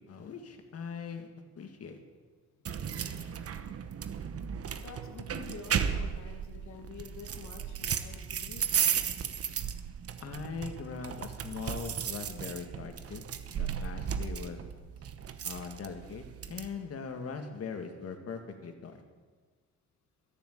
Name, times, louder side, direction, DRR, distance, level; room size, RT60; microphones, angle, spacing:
voice 1, 0.1-1.3 1.6-2.0 10.2-13.3 13.6-14.6 15.4-19.0, left 5 dB, 50° left, 6 dB, 1.9 m, -41 dB
sound 1, 2.7-16.7, right 8 dB, 50° right, 1.0 m, -35 dB
voice 2, 2.9-3.3 4.8-9.1, left 6 dB, 70° left, 5 dB, 1.8 m, -48 dB
13.5 x 7.1 x 9.3 m, 1.4 s
cardioid pair, 90°, 30 cm